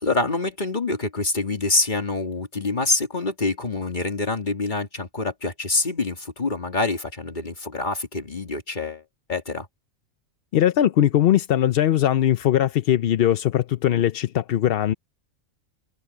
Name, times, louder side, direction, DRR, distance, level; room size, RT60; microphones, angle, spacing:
voice 1, 0.0-9.0 9.3-9.7, left 3 dB, 40° left, 2.6 m, -26 dB
voice 2, 10.5-14.9, left 11 dB, 60° left, 0.7 m, -20 dB
omnidirectional pair, 1.3 m